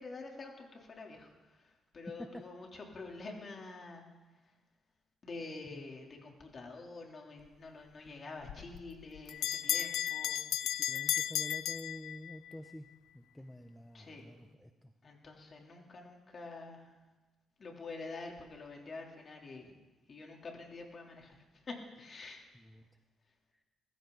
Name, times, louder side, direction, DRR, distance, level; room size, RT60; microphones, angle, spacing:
voice 1, 0.0-4.5 5.2-10.6 13.9-14.3 15.0-17.0 17.6-19.7 20.1-22.4, left 3 dB, 40° left, 0 dB, 3.4 m, -47 dB
Bell, 8.5-12.6, left 12 dB, 85° left, 0.4 m, -34 dB
voice 2, 10.8-12.9 13.1-14.9 22.5-22.8, left 1 dB, 5° left, 6 dB, 0.8 m, -49 dB
20.5 x 14.5 x 4.0 m, 1.2 s
cardioid pair, 90°, 0 cm